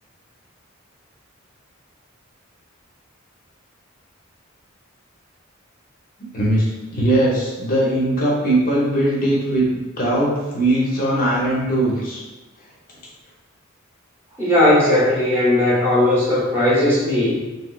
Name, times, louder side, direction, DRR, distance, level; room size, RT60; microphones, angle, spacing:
voice 1, 6.3-12.2, right 1 dB, 40° left, -5 dB, 0.7 m, -20 dB
voice 2, 14.4-17.4, left 1 dB, 10° right, -8 dB, 0.8 m, -17 dB
3.0 x 3.0 x 2.3 m, 1.2 s
head